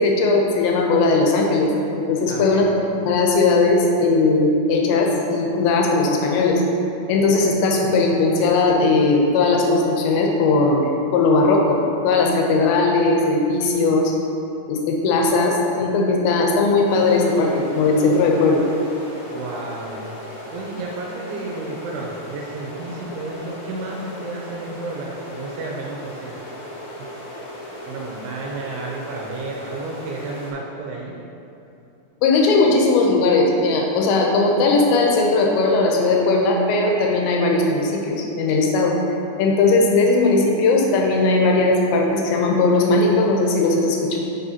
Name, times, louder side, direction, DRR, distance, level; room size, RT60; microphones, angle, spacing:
voice 1, 0.0-2.7 3.1-6.6 7.1-14.1 14.7-18.6 32.2-39.0 39.4-44.2, left 3 dB, 90° left, 0 dB, 3.1 m, -18 dB
voice 2, 2.3-2.7 19.2-26.4 27.2-31.2, right 3 dB, 80° right, -1 dB, 2.4 m, -32 dB
sound 1, 16.9-30.5, left 1 dB, 65° left, 2.0 m, -37 dB
8.1 x 5.5 x 2.8 m, 2.8 s
omnidirectional pair, 5.0 m